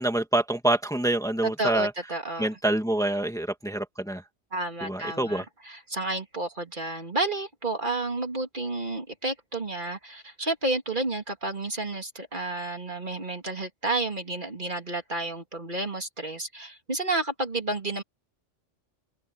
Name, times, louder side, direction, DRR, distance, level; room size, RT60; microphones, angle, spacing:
voice 1, 0.0-1.9 2.4-4.2 4.8-5.5, right 1 dB, 5° left, 2.2 m, -26 dB
voice 2, 1.6-2.5 4.5-18.0, right 2 dB, 40° right, 2.5 m, -31 dB
open air
omnidirectional pair, 1.3 m